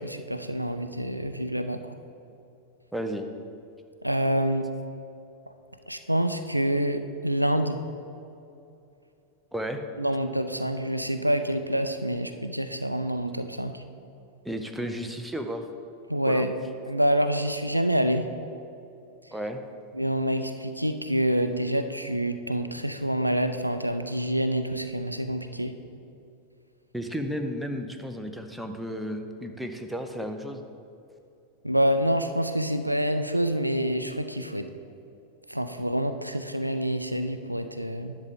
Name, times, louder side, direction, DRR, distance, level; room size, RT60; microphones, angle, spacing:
voice 1, 0.0-1.8 4.0-4.6 5.9-7.8 10.0-13.8 16.1-16.5 16.9-18.3 19.9-25.7 31.6-34.7 35.5-38.2, equal, 90° right, 9 dB, 0.4 m, -27 dB
voice 2, 2.9-3.3 9.5-9.8 14.4-15.6 16.3-16.5 19.3-19.6 26.9-30.6, equal, ahead, 5 dB, 0.7 m, -33 dB
10.5 x 6.8 x 3.7 m, 2.7 s
figure-of-eight pair, 90°, 0 cm